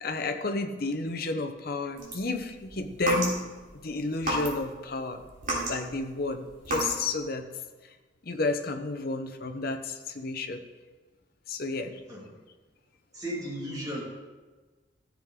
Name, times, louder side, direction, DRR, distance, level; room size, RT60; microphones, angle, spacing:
voice 1, 0.0-3.3 3.8-5.2 5.7-7.5 8.2-10.6 11.5-12.0, left 3 dB, 50° left, 5 dB, 0.8 m, -31 dB
sound 1, 2.0-3.7 4.2-4.8 5.2-7.1, right 1 dB, 45° right, 3.2 m, -32 dB
voice 2, 13.1-14.0, equal, 20° right, -3 dB, 2.1 m, -35 dB
14.0 x 7.6 x 3.7 m, 1.3 s
head